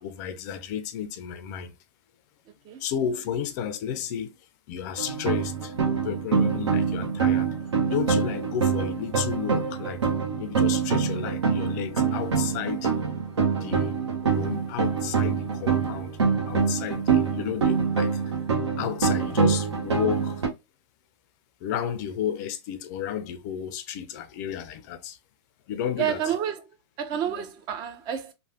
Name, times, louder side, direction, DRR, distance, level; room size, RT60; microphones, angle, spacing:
voice 1, 0.0-1.7 2.8-4.3 4.7-7.5 7.9-10.0 10.4-12.9 13.4-16.2 16.5-18.4 18.8-20.4 21.6-25.2 25.7-26.2 27.3-27.5, left 9 dB, 40° left, 0.4 m, -32 dB
sound 1, 5.0-20.5, right 6 dB, 80° right, 0.9 m, -25 dB
voice 2, 26.0-26.6 27.0-28.3, right 9 dB, 30° right, 0.5 m, -29 dB
3.1 x 2.1 x 2.7 m
hypercardioid pair, 125°, 14 cm